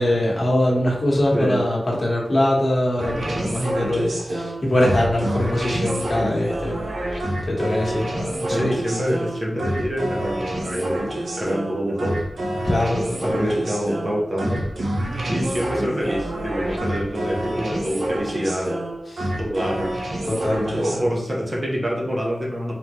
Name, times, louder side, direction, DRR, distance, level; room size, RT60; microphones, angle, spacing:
voice 1, 0.0-6.8 7.4-8.7 12.6-13.6 19.1-19.3 20.2-21.1, left 1 dB, 40° left, -3 dB, 1.3 m, -22 dB
sound 1, 3.0-21.0, right 1 dB, 80° right, 0.9 m, -27 dB
voice 2, 8.4-11.0 11.4-12.2 13.2-14.7 15.2-18.8 19.4-20.0 20.7-22.7, equal, 30° right, -3 dB, 1.1 m, -26 dB
3.8 x 3.7 x 3.1 m, 0.86 s
wide cardioid pair, 110°, 0 cm